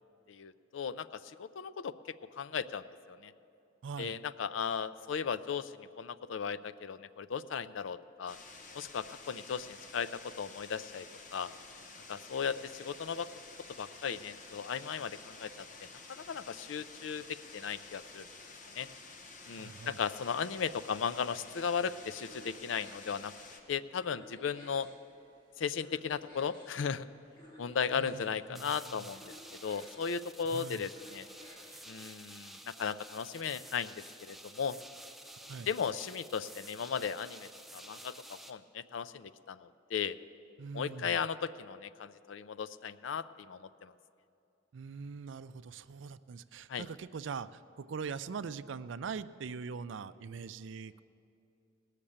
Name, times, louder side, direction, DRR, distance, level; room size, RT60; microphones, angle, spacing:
voice 1, 0.3-1.9 2.4-3.3 4.0-8.4 8.7-11.1 11.3-11.5 12.1-13.3 13.8-15.5 16.1-18.3 18.7-18.9 19.5-23.3 23.7-24.9 25.6-27.1 27.6-29.3 29.6-31.3 31.9-33.9 34.2-34.8 35.7-40.2 40.7-43.9 46.7-46.8, left 6 dB, 75° left, 15 dB, 0.4 m, -36 dB
voice 2, 3.8-4.2 19.6-20.0 27.9-29.1 30.5-30.9 35.5-35.7 40.6-41.2 44.7-51.0, right 5 dB, 70° right, 14 dB, 0.4 m, -42 dB
sound 1, 8.3-23.6, left 3 dB, 40° left, 1.1 m, -51 dB
sound 2, 21.8-32.0, equal, 25° left, 2.9 m, -57 dB
sound 3, 28.5-38.5, right 1 dB, ahead, 0.4 m, -51 dB
18.5 x 6.7 x 8.6 m, 2.6 s
head